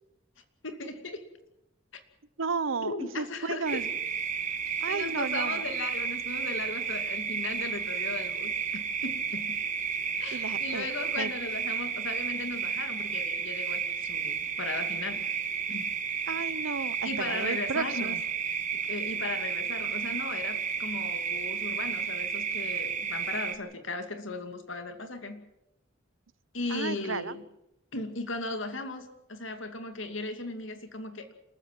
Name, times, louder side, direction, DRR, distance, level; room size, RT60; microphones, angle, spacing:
voice 1, 0.6-1.2 2.8-3.8 4.9-9.6 10.2-15.3 15.7-15.9 17.0-18.2 18.8-25.4 26.5-27.4 27.9-31.3, left 3 dB, 70° left, 2.6 m, -37 dB
voice 2, 2.4-3.9 4.8-5.6 10.3-10.9 11.2-11.3 16.3-18.2 26.7-27.3, right 4 dB, 80° right, 0.8 m, -33 dB
sound 1, 3.7-23.6, right 6 dB, 40° right, 1.7 m, -32 dB
27.0 x 14.5 x 7.6 m
head